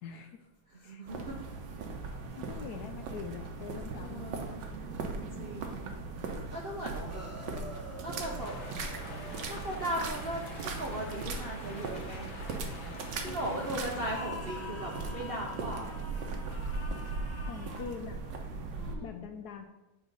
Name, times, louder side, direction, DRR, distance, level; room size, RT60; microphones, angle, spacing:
voice 1, 0.0-0.4 0.8-1.0 2.3-4.3 13.3-14.3 17.4-18.2 19.0-19.6, left 6 dB, 70° left, 6 dB, 1.0 m, -44 dB
voice 2, 0.7-1.4 3.9-4.6 5.4-5.9 6.5-7.3 8.0-8.6 9.4-12.3 13.2-16.0 18.7-19.1, right 1 dB, 55° right, -1 dB, 0.6 m, -38 dB
sound 1, 1.1-18.9, right 3 dB, 75° right, 1.5 m, -39 dB
sound 2, 7.0-9.8 13.9-18.0, left 2 dB, 15° left, 0.5 m, -47 dB
sound 3, 8.4-14.2, left 2 dB, 45° left, 1.2 m, -47 dB
9.0 x 3.1 x 5.2 m, 0.96 s
omnidirectional pair, 2.0 m